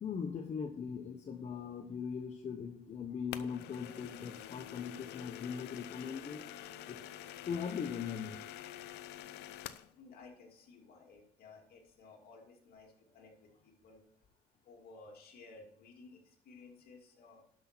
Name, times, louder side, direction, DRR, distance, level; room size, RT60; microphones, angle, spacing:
voice 1, 0.0-6.4 6.9-7.0 7.4-8.4, left 6 dB, 40° left, 3 dB, 1.0 m, -40 dB
sound 1, 3.3-9.9, left 12 dB, 85° left, 0.6 m, -47 dB
voice 2, 9.9-14.0 14.6-17.4, left 3 dB, 65° left, 0 dB, 2.6 m, -56 dB
11.5 x 6.1 x 4.4 m, 0.66 s
cardioid pair, 110°, 17 cm